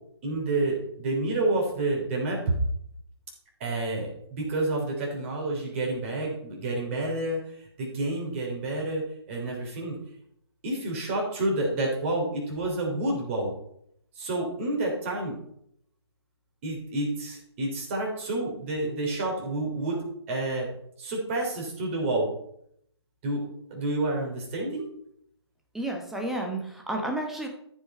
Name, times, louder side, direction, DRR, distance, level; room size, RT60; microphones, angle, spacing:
voice 1, 0.2-2.5 3.6-7.4 7.8-10.0 10.6-13.5 14.2-15.4 16.6-20.0 20.3-20.7 21.0-22.3 23.2-23.4 23.7-24.8, right 2 dB, 30° right, 0 dB, 3.3 m, -29 dB
voice 2, 25.7-27.5, right 1 dB, ahead, 1 dB, 1.0 m, -31 dB
13.5 x 5.5 x 4.4 m, 0.71 s
figure-of-eight pair, 145°, 14 cm